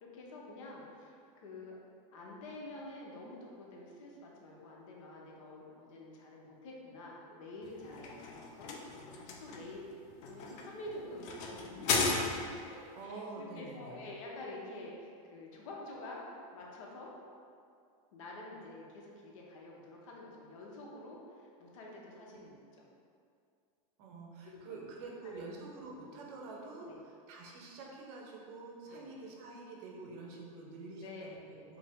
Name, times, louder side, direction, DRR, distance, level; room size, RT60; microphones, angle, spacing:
voice 1, 0.0-1.8 2.1-9.8 10.3-12.1 12.7-16.2 16.5-17.1 18.1-22.9 24.4-24.9 26.9-27.0 28.9-29.0 30.9-31.7, left 2 dB, 65° left, -2 dB, 0.8 m, -48 dB
sound 1, 7.6-12.7, left 4 dB, 40° left, 0.4 m, -36 dB
voice 2, 12.9-14.0 22.3-22.4 24.0-31.4 31.7-31.8, right 3 dB, 50° right, -2 dB, 0.7 m, -47 dB
4.8 x 2.0 x 3.5 m, 2.4 s
supercardioid pair, 150°, 18 cm